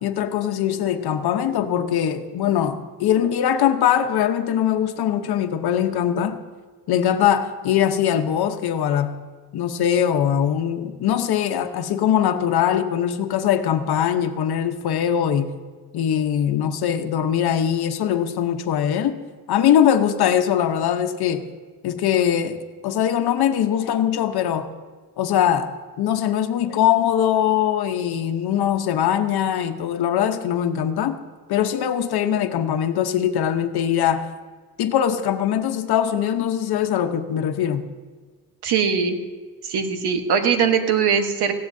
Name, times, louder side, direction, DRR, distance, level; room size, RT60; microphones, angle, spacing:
voice 1, 0.0-6.4 6.9-9.2 9.5-15.6 15.9-19.2 19.5-21.5 21.8-22.6 22.8-24.7 25.2-25.7 26.0-31.2 31.5-34.3 34.8-37.9, left 9 dB, 70° left, 8 dB, 0.9 m, -21 dB
voice 2, 38.6-39.2 39.6-41.5, right 6 dB, 80° right, 6 dB, 1.3 m, -21 dB
18.0 x 15.0 x 2.7 m, 1.5 s
cardioid pair, 145°, 39 cm